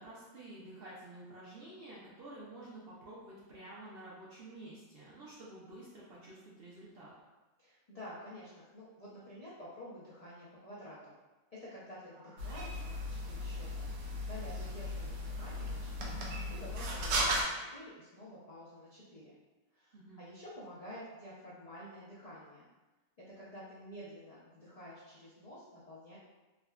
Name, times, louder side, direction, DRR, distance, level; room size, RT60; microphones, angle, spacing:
voice 1, 0.0-7.1 12.1-12.3 16.3-16.7 19.9-20.2, right 1 dB, 60° right, -7 dB, 0.6 m, -50 dB
voice 2, 7.6-11.2 11.5-13.9 14.2-16.2 16.5-19.3 19.7-22.7 23.2-26.2, equal, 80° left, -9 dB, 0.3 m, -50 dB
sound 1, 12.4-17.4, equal, 90° right, 1.1 m, -36 dB
3.5 x 2.1 x 2.3 m, 1.2 s
omnidirectional pair, 1.5 m